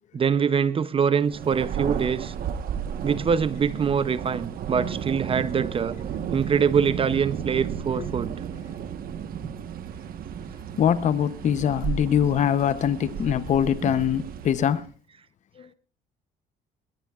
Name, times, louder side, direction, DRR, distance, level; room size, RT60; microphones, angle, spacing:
voice 1, 0.1-2.3 3.0-6.0 6.3-8.3, right 6 dB, 35° right, 0.6 m, -24 dB
Thunder, 1.2-14.9, right 8 dB, 60° right, 1.2 m, -33 dB
voice 2, 10.8-14.9, left 9 dB, 45° left, 0.7 m, -23 dB
21.0 x 18.5 x 2.4 m
cardioid pair, 110°, 17 cm